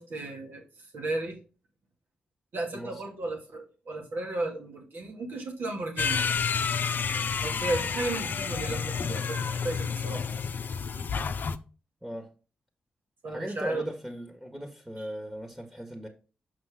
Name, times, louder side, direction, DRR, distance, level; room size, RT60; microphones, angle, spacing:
voice 1, 0.0-1.4 2.5-6.4 7.4-10.2 13.2-13.9 15.0-15.1, right 2 dB, 75° right, 2.3 m, -34 dB
sound 1, 6.0-11.6, left 6 dB, 60° left, 0.6 m, -30 dB
voice 2, 13.3-16.1, equal, 10° right, 1.7 m, -38 dB
6.4 x 5.9 x 3.7 m
supercardioid pair, 40°, 4 cm